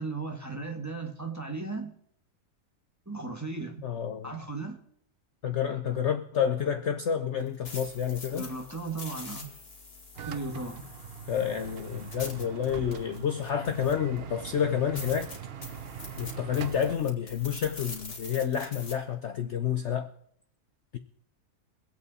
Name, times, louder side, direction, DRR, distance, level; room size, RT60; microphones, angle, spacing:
voice 1, 0.0-1.9 3.0-3.9 4.2-4.8 8.4-9.5 10.2-10.8, right 3 dB, 10° right, 1.5 m, -36 dB
voice 2, 3.8-4.3 5.4-8.5 11.3-15.3 16.2-20.1 20.9-21.0, left 8 dB, 60° left, 0.9 m, -29 dB
sound 1, 7.4-14.2 14.6-14.7 15.0-18.9, left 3 dB, 40° left, 2.3 m, -44 dB
sound 2, 10.2-17.0, right 8 dB, 50° right, 0.8 m, -42 dB
23.5 x 8.3 x 4.1 m
omnidirectional pair, 1.6 m